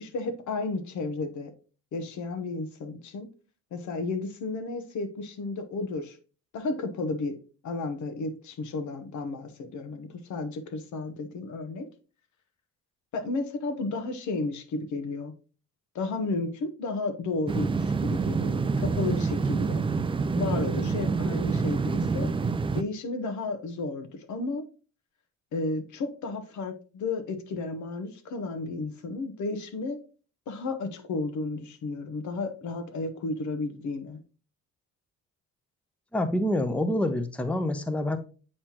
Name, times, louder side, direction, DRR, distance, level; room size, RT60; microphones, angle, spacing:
voice 1, 0.0-1.5 1.9-3.3 3.7-6.2 6.5-7.4 7.6-11.9 13.1-15.3 15.9-19.8 20.3-22.3 22.7-24.6 25.5-30.0 30.5-34.2, left 3 dB, 75° left, 1.1 m, -33 dB
sound 1, 17.5-22.8, right 4 dB, 20° right, 0.3 m, -27 dB
voice 2, 36.1-38.2, left 1 dB, 5° left, 0.7 m, -27 dB
7.6 x 4.3 x 2.9 m
cardioid pair, 90°, 30 cm